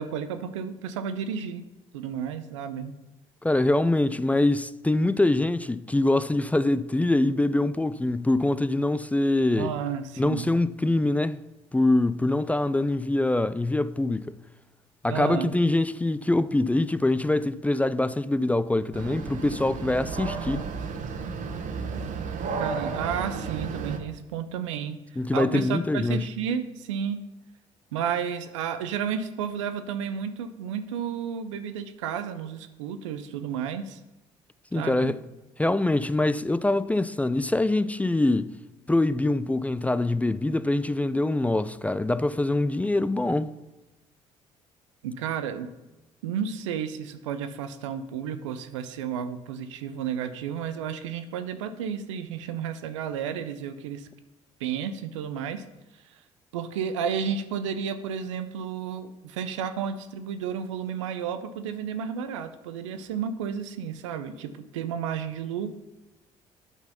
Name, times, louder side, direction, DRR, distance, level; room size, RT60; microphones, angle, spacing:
voice 1, 0.0-1.7 1.9-2.9 9.6-10.5 15.1-15.5 22.6-25.0 25.3-27.2 27.9-34.0 34.7-35.2 45.0-45.7 46.2-54.1 54.6-55.6 56.1-56.2 56.5-65.7, right 7 dB, 85° right, 0.5 m, -32 dB
voice 2, 3.4-9.7 10.2-11.4 11.7-14.3 15.0-20.7 25.2-26.3 34.7-35.2 35.6-38.5 38.9-43.5, left 2 dB, 10° left, 0.3 m, -24 dB
sound 1, 18.9-24.0, right 5 dB, 55° right, 0.8 m, -33 dB
9.0 x 4.0 x 5.5 m
hypercardioid pair, 50°, 16 cm